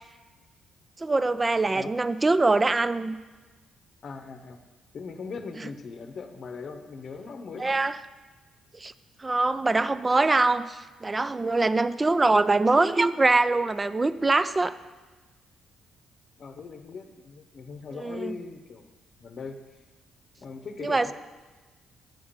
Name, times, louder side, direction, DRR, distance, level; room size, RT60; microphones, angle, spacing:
voice 1, 1.0-3.2 7.6-8.0 8.8-8.9 9.2-14.7 18.0-18.3 20.8-21.1, right 3 dB, 20° right, 14 dB, 0.4 m, -23 dB
voice 2, 4.0-4.6 4.9-7.8 16.4-18.9 19.2-19.6 20.4-21.1, left 4 dB, 50° left, 6 dB, 0.8 m, -39 dB
7.9 x 7.0 x 5.2 m, 1.3 s
cardioid pair, 90°, 0 cm